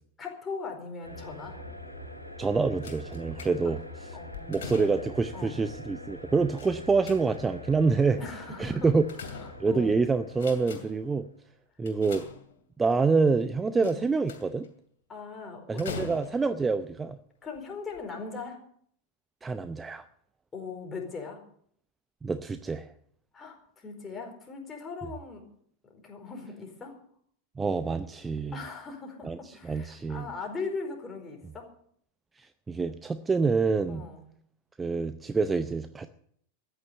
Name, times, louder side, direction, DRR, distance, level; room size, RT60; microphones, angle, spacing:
voice 1, 0.2-1.6 3.6-3.7 4.1-4.8 5.3-5.6 8.2-8.9 9.2-10.0 13.8-14.0 15.1-16.1 17.4-18.6 20.5-21.4 23.3-25.4 25.9-27.0 28.5-31.7 33.9-34.3, left 4 dB, 15° left, 1 dB, 4.6 m, -40 dB
sound 1, 1.0-11.3, left 1 dB, 90° left, 2.7 m, -44 dB
voice 2, 2.4-4.2 4.5-8.2 8.6-9.0 9.6-11.3 11.8-12.2 12.8-14.7 15.7-17.2 19.4-20.0 22.2-22.9 27.6-28.6 29.2-30.3 32.4-34.0 34.8-36.1, right 4 dB, 15° right, 11 dB, 0.6 m, -27 dB
sound 2, 2.8-3.9 4.3-5.3 6.6-7.6 8.6-9.9 10.3-11.1 11.8-12.8 13.8-14.7 15.8-16.6 17.4-17.6 17.9-18.0, left 6 dB, 60° left, 2.6 m, -43 dB
14.0 x 9.8 x 8.2 m, 0.64 s
figure-of-eight pair, 90°, 0 cm